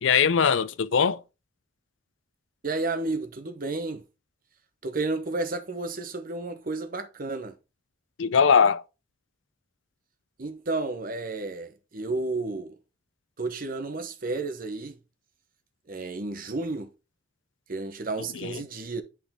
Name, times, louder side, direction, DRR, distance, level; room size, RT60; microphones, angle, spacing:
voice 1, 0.0-1.2 8.2-8.8 18.4-18.5, left 6 dB, 75° left, 0.5 m, -21 dB
voice 2, 2.6-4.0 4.8-7.5 10.4-12.8 13.4-15.0 15.9-16.9 17.7-19.0, right 3 dB, 45° right, 0.9 m, -32 dB
9.0 x 5.1 x 3.6 m
head